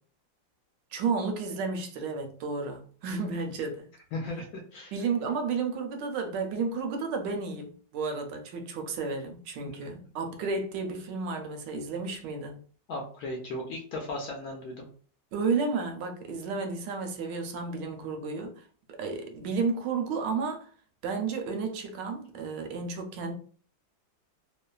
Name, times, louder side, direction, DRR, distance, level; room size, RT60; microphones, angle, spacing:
voice 1, 0.9-3.9 4.9-12.6 15.3-18.6 19.0-20.7 21.0-23.3, right 4 dB, 80° right, 1.2 m, -32 dB
voice 2, 4.1-4.9 9.6-9.9 12.9-14.9, left 2 dB, 70° left, 0.9 m, -36 dB
3.1 x 2.1 x 2.2 m
omnidirectional pair, 2.0 m